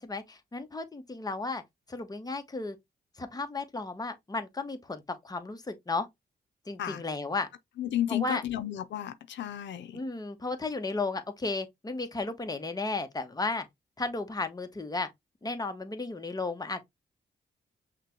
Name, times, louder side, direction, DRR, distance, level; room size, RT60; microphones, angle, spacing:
voice 1, 0.0-1.6 1.9-2.8 3.2-6.1 6.7-7.5 8.1-8.4 9.9-13.6 14.0-15.1 15.4-16.8, left 3 dB, 20° left, 0.9 m, -34 dB
voice 2, 7.8-10.0, left 11 dB, 85° left, 0.6 m, -33 dB
5.7 x 2.2 x 3.0 m
cardioid pair, 70°, 18 cm